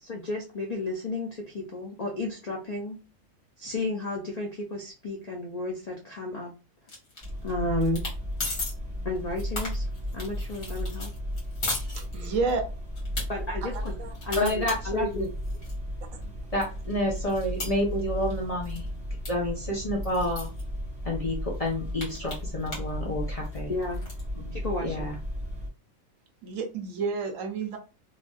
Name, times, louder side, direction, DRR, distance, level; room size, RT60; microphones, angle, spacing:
voice 1, 0.0-3.0 3.6-6.5 7.4-8.0 9.0-9.9 10.1-11.1 13.3-13.9 14.2-15.3 23.7-24.0 24.5-25.2, left 2 dB, 80° left, -1 dB, 0.3 m, -32 dB
sound 1, 6.9-7.5 7.8-8.1 8.4-8.7 9.2-12.5 12.9-13.2 13.7-15.7 16.2-16.3 16.6-18.4 18.6-18.9 19.2-19.3 19.6-19.7 20.0-20.6 21.2-21.3 21.5-22.9 23.2-24.2, left 2 dB, 60° left, 1.7 m, -36 dB
sound 2, 7.2-25.7, equal, 5° right, 1.4 m, -35 dB
voice 2, 11.9-12.6 13.6-14.1 16.1-16.2 26.4-27.8, right 4 dB, 70° right, 5 dB, 1.0 m, -30 dB
voice 3, 14.4-15.3 16.5-18.9 19.3-20.5 21.0-23.7 24.3-25.2, left 1 dB, 35° left, -2 dB, 0.6 m, -29 dB
3.1 x 2.5 x 2.3 m, 0.32 s
omnidirectional pair, 1.5 m